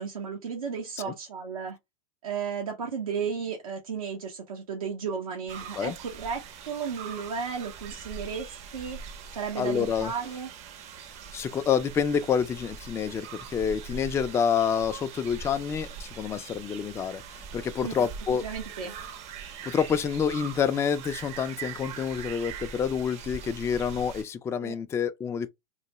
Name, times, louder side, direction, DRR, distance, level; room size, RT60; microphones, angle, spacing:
voice 1, 0.0-1.8 2.2-9.0 9.3-10.5 17.8-18.0 18.4-18.9 24.6-24.8, right 6 dB, 90° right, 0.7 m, -34 dB
sound 1, 5.5-24.2, right 7 dB, 40° right, 0.6 m, -42 dB
voice 2, 9.6-10.1 11.3-18.4 19.7-25.5, left 7 dB, 15° left, 0.3 m, -28 dB
3.1 x 2.1 x 2.9 m
hypercardioid pair, 100°, 18 cm